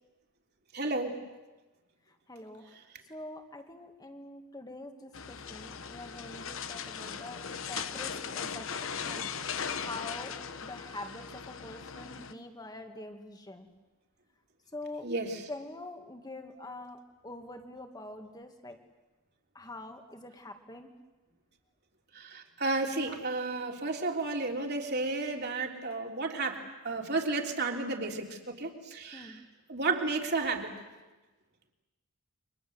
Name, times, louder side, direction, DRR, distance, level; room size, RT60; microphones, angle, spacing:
voice 1, 0.7-1.2 7.8-7.9 15.0-15.4 22.1-29.4 29.7-30.7, right 3 dB, 50° right, 2 dB, 3.4 m, -32 dB
voice 2, 2.3-2.6 3.1-8.7 9.0-9.2 9.7-10.4 10.6-13.7 14.7-15.1 15.5-17.0 17.2-18.8 19.5-20.9 29.1-29.4, left 2 dB, 15° left, 6 dB, 2.2 m, -45 dB
sound 1, 5.1-12.3, left 6 dB, 65° left, 1.1 m, -38 dB
29.0 x 25.0 x 8.0 m, 1.2 s
head